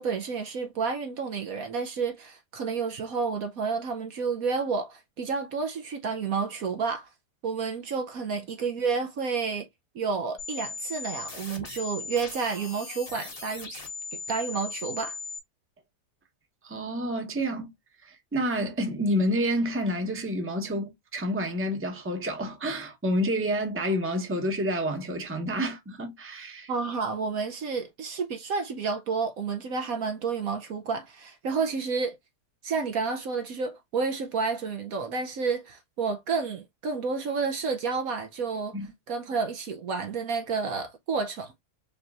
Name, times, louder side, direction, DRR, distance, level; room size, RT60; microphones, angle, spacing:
voice 1, 0.0-7.1 7.4-9.7 9.9-13.8 14.1-15.2 26.7-32.2 32.6-38.8 39.1-41.5, right 5 dB, 65° right, 1.1 m, -30 dB
sound 1, 10.4-15.4, left 4 dB, 25° left, 1.0 m, -38 dB
voice 2, 16.6-17.7 18.0-26.7 38.7-38.9, equal, 10° right, 0.9 m, -29 dB
5.3 x 3.0 x 2.4 m
omnidirectional pair, 1.8 m